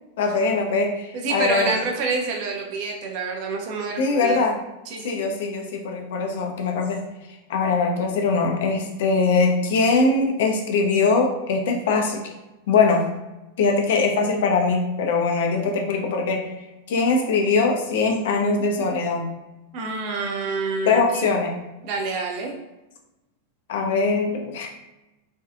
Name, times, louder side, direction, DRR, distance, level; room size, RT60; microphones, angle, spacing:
voice 1, 0.2-1.7 4.0-4.6 5.0-7.0 7.5-12.2 12.7-13.0 13.6-16.4 16.9-19.3 20.8-21.5 23.7-24.7, left 4 dB, 55° left, 2 dB, 0.4 m, -21 dB
voice 2, 1.1-4.5 4.9-5.2 19.7-21.3 21.8-22.6, right 4 dB, 45° right, 1 dB, 0.5 m, -27 dB
2.6 x 2.3 x 2.4 m, 1.0 s
figure-of-eight pair, 90°, 0 cm